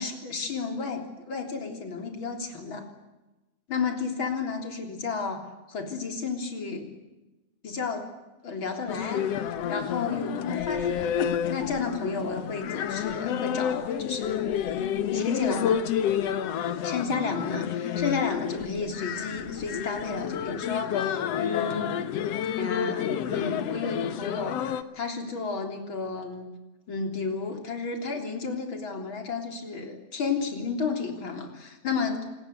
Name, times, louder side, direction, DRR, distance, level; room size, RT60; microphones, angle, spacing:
voice 1, 0.0-2.9 3.7-6.9 7.6-8.1 8.4-9.2 9.7-11.2 11.5-15.8 16.8-21.9 22.6-26.5 26.9-32.2, left 4 dB, 40° left, 4 dB, 4.1 m, -32 dB
sound 1, 8.9-24.8, left 9 dB, 65° left, 2.1 m, -30 dB
27.0 x 20.0 x 8.2 m, 1.0 s
omnidirectional pair, 3.4 m